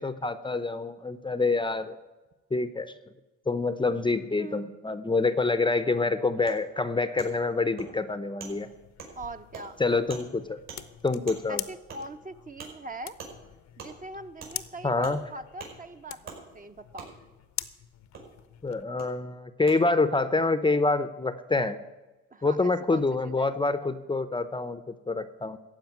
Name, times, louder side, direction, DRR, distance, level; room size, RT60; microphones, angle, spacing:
voice 1, 0.0-1.9 2.5-2.9 3.5-8.7 9.8-10.6 11.0-11.6 14.8-15.2 18.6-21.8 22.4-25.6, left 3 dB, 15° left, 12 dB, 0.6 m, -26 dB
voice 2, 4.4-4.8 9.2-9.8 11.5-13.1 13.8-17.1 22.3-23.5, right 2 dB, 25° right, 9 dB, 0.8 m, -41 dB
Wood, 6.5-6.6 7.2-7.3 7.8-7.9 8.4-8.5 9.0-9.1 9.5-9.6 10.1-10.2 10.7-10.8 11.3-11.4 11.9-12.0 12.6-12.7 13.2-13.3 13.8-13.9 14.4-14.5 15.0-15.2 15.6-15.7 16.3-16.4 17.0-17.1 18.1-18.2 19.0-19.1 19.7-19.8, right 5 dB, 65° right, 5.5 m, -42 dB
sound 1, 8.5-18.8, left 12 dB, 65° left, 0.7 m, -44 dB
15.0 x 5.2 x 9.3 m, 1.1 s
cardioid pair, 90°, 30 cm